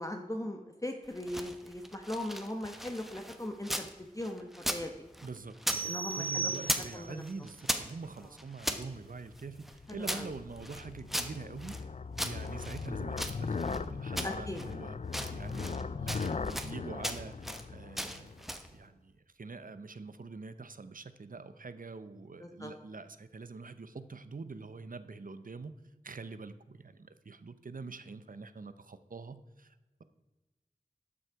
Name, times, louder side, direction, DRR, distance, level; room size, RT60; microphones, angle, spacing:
voice 1, 0.0-3.9 4.1-4.9 5.8-7.2 9.9-10.3 14.2-14.6 15.8-16.0 22.4-22.7, left 1 dB, 25° left, 4 dB, 1.0 m, -39 dB
sound 1, 1.1-3.9 4.2-5.8 6.1-6.9 7.2-8.8 9.4-11.8 12.2-13.8 14.2-14.7 15.0-15.8 16.1-16.7 17.0-17.6 18.0-18.7, equal, ahead, 1.0 m, -37 dB
voice 2, 5.2-11.8 12.2-15.0 15.3-17.3 17.7-18.3 18.7-25.7 26.0-30.0, right 4 dB, 75° right, 12 dB, 0.7 m, -45 dB
sound 2, 5.7-7.2, right 4 dB, 40° right, 1.5 m, -36 dB
sound 3, 9.0-18.5, left 4 dB, 55° left, 0.4 m, -39 dB
12.0 x 6.4 x 4.6 m, 1.1 s
wide cardioid pair, 40°, 14 cm